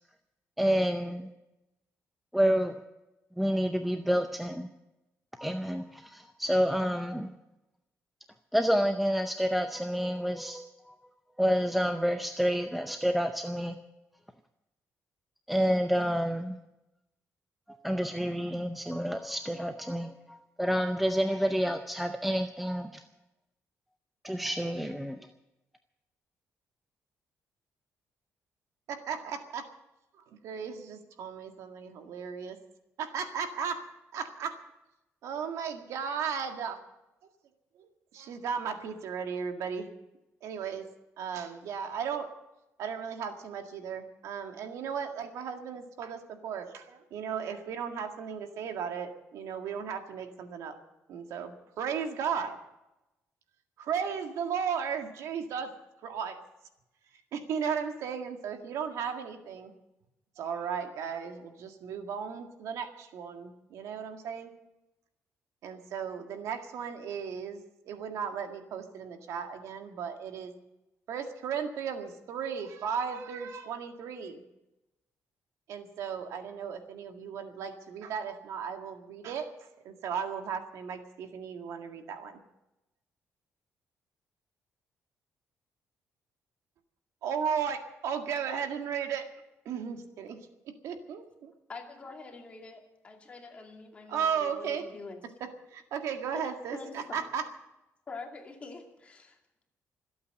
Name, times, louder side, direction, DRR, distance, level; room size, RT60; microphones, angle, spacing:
voice 1, 0.6-1.3 2.3-2.7 3.4-4.7 5.4-7.3 8.5-10.7 11.4-13.8 15.5-16.6 17.8-23.0 24.2-25.2, equal, ahead, 6 dB, 0.6 m, -28 dB
voice 2, 28.9-29.6 30.4-32.6 33.0-33.8 34.1-34.6 35.2-36.8 37.8-39.9 40.4-40.8 41.2-42.3 42.8-50.7 51.1-52.6 53.8-55.7 56.0-56.4 57.3-59.7 60.4-64.5 65.6-70.5 71.1-74.4 75.7-79.5 79.8-82.4 87.2-89.2 89.7-90.4 90.7-91.5 94.1-94.8 95.4-97.4, right 7 dB, 80° right, 5 dB, 1.9 m, -35 dB
voice 3, 91.7-95.2 96.3-97.2 98.1-99.4, left 4 dB, 25° left, 2 dB, 2.4 m, -45 dB
25.5 x 8.6 x 6.6 m, 0.94 s
cardioid pair, 175°, 5 cm